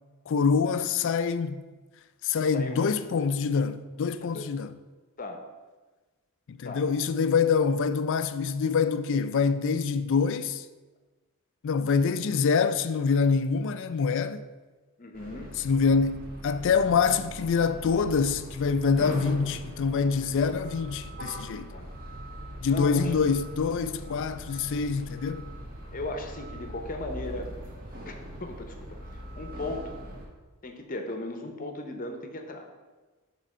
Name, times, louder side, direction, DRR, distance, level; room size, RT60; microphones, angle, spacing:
voice 1, 0.3-1.6 2.2-4.8 6.5-10.6 11.6-14.4 15.6-21.7 22.6-25.5, left 5 dB, 55° left, 0.4 m, -25 dB
voice 2, 2.5-2.9 4.2-4.5 5.2-5.4 6.6-6.9 15.0-15.6 21.7-21.9 22.7-23.1 25.9-27.5 28.1-28.2 28.4-30.0 30.6-32.7, left 2 dB, 40° left, 0.8 m, -37 dB
sound 1, 15.1-30.3, equal, 40° right, 1.4 m, -41 dB
6.6 x 3.8 x 6.1 m
head